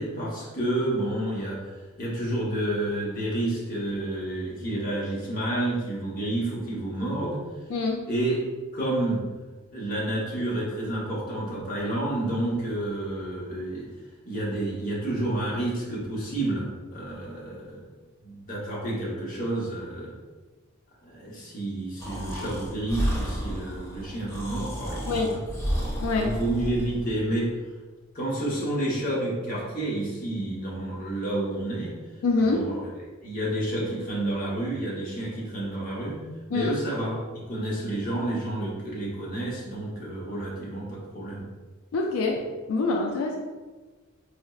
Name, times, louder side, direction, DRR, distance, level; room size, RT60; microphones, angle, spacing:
voice 1, 0.0-1.6 2.0-7.4 8.1-8.4 8.7-9.2 9.7-13.8 14.2-17.9 18.2-20.1 21.0-25.4 26.2-27.5 28.1-32.0 32.4-36.2 36.5-41.5, right 1 dB, 45° left, -5 dB, 0.8 m, -30 dB
voice 2, 7.7-8.0 25.1-25.3 26.0-26.3 32.2-32.6 36.5-36.7 41.9-42.4 42.7-43.4, left 3 dB, 85° left, 0 dB, 0.3 m, -25 dB
Breathing, 22.0-27.1, equal, 15° left, 0.6 m, -31 dB
4.2 x 2.0 x 2.3 m, 1.3 s
head